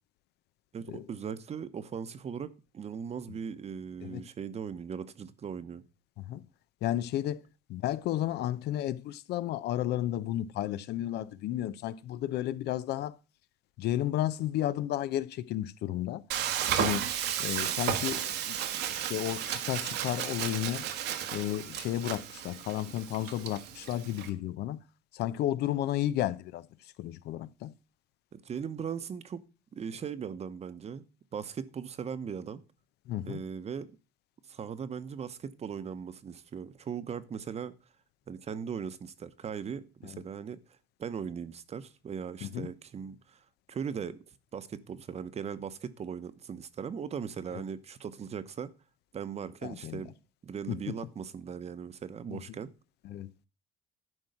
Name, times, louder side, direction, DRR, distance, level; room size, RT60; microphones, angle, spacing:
voice 1, 0.7-5.8 28.3-29.4 29.7-31.0 31.3-32.6 33.3-33.9 34.5-37.7 38.3-40.6 41.0-43.4 43.7-44.2 44.5-48.7 49.1-50.1 50.4-52.7, right 7 dB, 40° right, 1.0 m, -39 dB
voice 2, 6.8-7.4 7.7-13.2 13.8-16.2 16.8-17.0 17.4-18.6 18.9-20.8 21.3-24.8 25.1-26.7 27.0-27.7 33.1-33.4 40.1-40.2 42.4-42.7 47.5-47.6 49.6-50.0 50.7-50.9 52.3-52.4 53.0-53.3, left 13 dB, 75° left, 0.7 m, -32 dB
Frying (food), 16.3-24.3, right 10 dB, 80° right, 1.4 m, -33 dB
11.0 x 4.6 x 7.9 m
cardioid pair, 110°, 17 cm